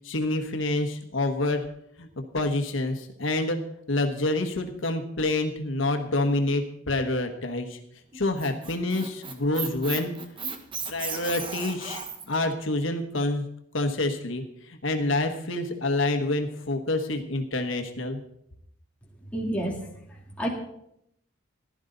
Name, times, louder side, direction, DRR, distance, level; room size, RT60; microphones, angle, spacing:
voice 1, 0.0-1.6 2.0-3.6 3.9-7.8 8.1-10.1 10.9-12.0 12.3-13.5 13.7-18.2, left 2 dB, 85° left, 6 dB, 1.3 m, -27 dB
Squeak, 8.1-12.4, right 5 dB, 25° right, 1.2 m, -35 dB
voice 2, 19.3-20.5, right 1 dB, 5° left, -2 dB, 2.2 m, -31 dB
15.0 x 11.5 x 3.9 m, 0.75 s
head